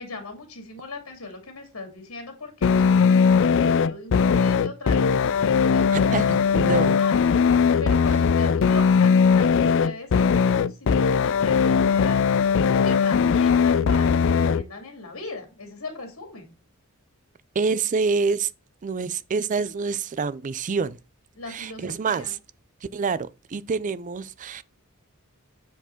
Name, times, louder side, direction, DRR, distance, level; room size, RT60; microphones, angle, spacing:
voice 1, 0.0-7.3 7.8-12.4 12.8-16.5 21.3-22.4, left 3 dB, 80° left, 2.4 m, -38 dB
sound 1, 2.6-14.6, left 6 dB, 60° left, 0.4 m, -19 dB
voice 2, 5.9-7.0 17.6-18.5 18.8-21.0 21.5-22.4 22.9-24.6, right 4 dB, 35° right, 0.4 m, -27 dB
7.9 x 4.8 x 4.4 m
head